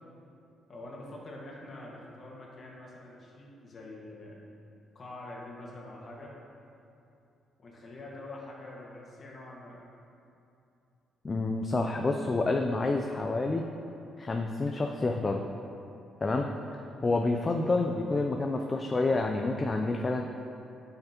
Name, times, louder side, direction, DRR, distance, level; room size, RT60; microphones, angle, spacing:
voice 1, 0.7-4.4 4.9-6.3 7.6-9.8 16.3-16.5, left 2 dB, 45° left, -4 dB, 1.5 m, -45 dB
voice 2, 11.2-13.6 14.2-15.4 16.2-16.5 17.0-20.2, left 3 dB, 30° left, 3 dB, 0.4 m, -28 dB
8.9 x 5.7 x 2.9 m, 2.7 s
cardioid pair, 90°, 0 cm